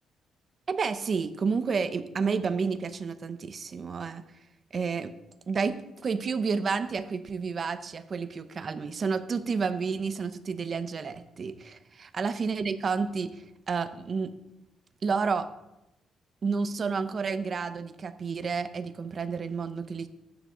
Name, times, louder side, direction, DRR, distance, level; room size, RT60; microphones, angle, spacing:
voice 1, 0.7-4.2 4.7-5.1 5.5-14.3 15.0-15.5 16.4-20.1, right 5 dB, 35° right, 11 dB, 0.7 m, -30 dB
14.0 x 9.3 x 3.7 m, 0.91 s
cardioid pair, 155°, 0 cm